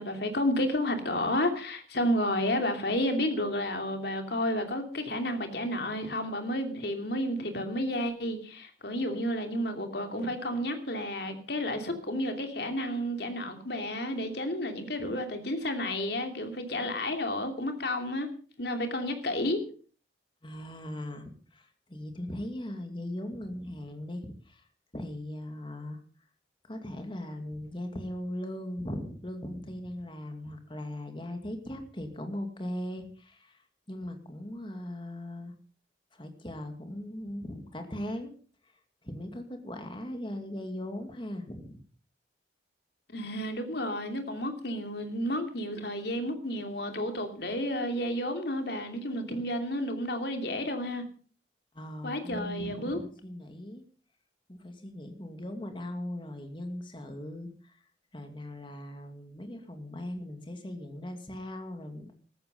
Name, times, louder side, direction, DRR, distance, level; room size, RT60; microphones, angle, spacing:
voice 1, 0.0-18.3 18.6-19.6 43.1-51.0 52.0-53.0, left 1 dB, 60° left, 6 dB, 2.9 m, -31 dB
voice 2, 20.4-24.6 24.9-26.0 26.7-35.5 36.1-38.3 39.0-41.8 51.7-53.8 54.5-57.8 58.1-62.2, left 1 dB, 25° left, 6 dB, 2.3 m, -39 dB
15.0 x 13.5 x 5.3 m, 0.41 s
head